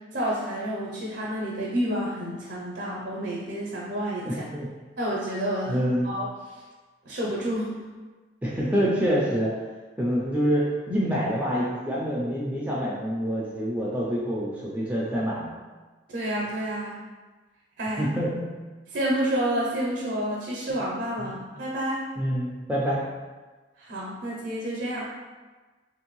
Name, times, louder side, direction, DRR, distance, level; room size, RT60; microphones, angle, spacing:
voice 1, 0.0-4.5 5.0-5.8 6.0-6.6 7.0-7.8 16.1-17.0 17.8-18.0 18.9-22.1 23.8-25.1, right 1 dB, 65° right, -4 dB, 0.5 m, -29 dB
voice 2, 4.2-4.7 5.7-6.1 8.4-9.5 10.0-15.5 18.0-18.5 21.2-21.3 22.2-23.0, equal, 10° right, -6 dB, 0.4 m, -26 dB
3.0 x 2.6 x 3.0 m, 1.3 s
head